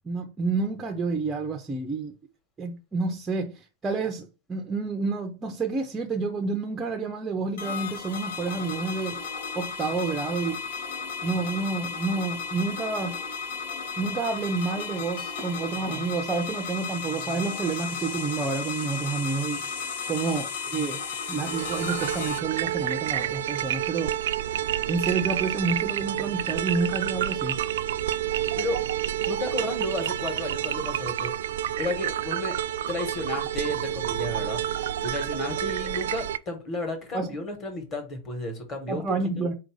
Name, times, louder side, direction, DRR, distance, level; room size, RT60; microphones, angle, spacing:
voice 1, 0.0-2.1 2.6-9.2 9.5-10.7 11.2-13.2 14.0-21.0 21.3-24.1 24.9-27.6 37.1-37.3 38.9-39.5, right 4 dB, 15° right, 0.4 m, -29 dB
sound 1, 7.6-22.4, left 5 dB, 80° left, 1.1 m, -34 dB
sound 2, 21.3-36.4, right 11 dB, 90° right, 0.3 m, -29 dB
voice 2, 29.3-31.3 31.8-32.6 32.9-39.5, left 1 dB, 25° left, 1.2 m, -33 dB
4.4 x 2.6 x 4.7 m
supercardioid pair, 165°, 0 cm